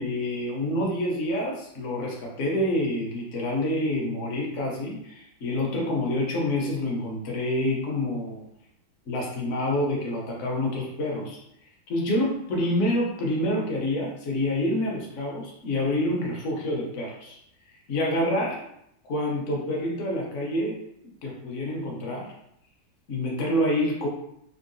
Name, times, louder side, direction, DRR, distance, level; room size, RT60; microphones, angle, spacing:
voice 1, 0.0-8.4 9.1-11.4 11.9-17.4 17.9-18.6 19.0-20.8 21.2-22.3 23.1-24.1, left 1 dB, 55° left, -2 dB, 0.9 m, -27 dB
3.7 x 2.1 x 2.5 m, 0.75 s
omnidirectional pair, 2.0 m